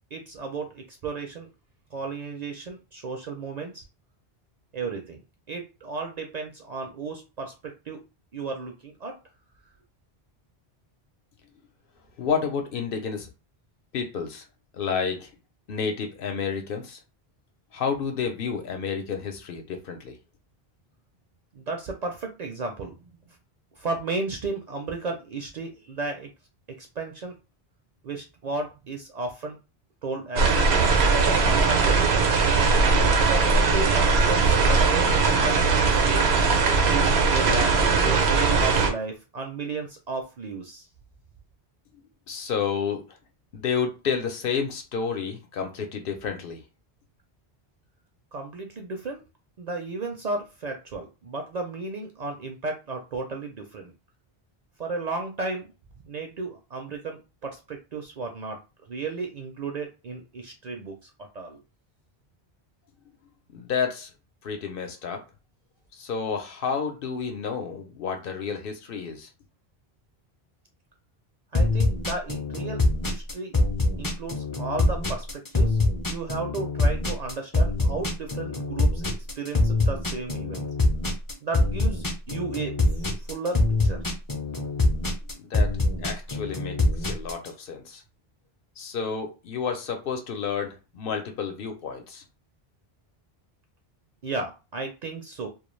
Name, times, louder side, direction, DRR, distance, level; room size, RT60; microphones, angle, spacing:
voice 1, 0.1-1.5 1.9-3.8 4.7-5.2 5.5-8.0 8.3-9.2 21.5-23.0 23.3-23.4 23.8-26.3 26.8-27.4 28.0-29.6 30.0-32.2 33.1-36.3 36.8-40.9 48.3-49.2 49.6-53.9 54.8-55.7 56.1-58.6 58.9-61.6 71.5-73.5 74.0-75.8 76.1-80.7 81.4-84.0 94.2-95.5, right 3 dB, 55° right, 3 dB, 0.5 m, -34 dB
voice 2, 12.2-13.3 13.9-14.4 14.8-15.3 15.7-17.0 17.7-20.1 42.3-43.0 43.5-46.6 63.5-64.1 64.4-65.2 65.9-69.3 85.4-85.7 86.0-86.7 87.1-88.0 88.8-92.2, left 6 dB, 65° left, 5 dB, 0.8 m, -30 dB
sound 1, 30.4-38.9, right 4 dB, 85° right, 0.9 m, -20 dB
sound 2, 71.5-87.5, left 2 dB, 30° left, 0.4 m, -24 dB
2.3 x 2.2 x 3.1 m, 0.29 s
omnidirectional pair, 1.0 m